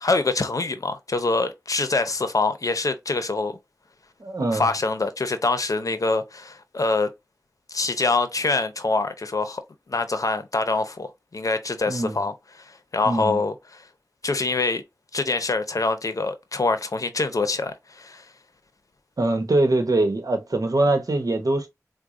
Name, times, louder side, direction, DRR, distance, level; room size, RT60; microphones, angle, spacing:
voice 1, 0.0-3.6 4.5-7.1 7.7-9.6 9.9-13.5 14.2-14.8 15.1-18.3, left 3 dB, 65° left, 0.6 m, -25 dB
voice 2, 4.2-4.7 11.9-12.2 13.0-13.4 19.2-21.7, right 2 dB, 70° right, 1.0 m, -23 dB
4.7 x 2.2 x 2.5 m
wide cardioid pair, 45°, 6 cm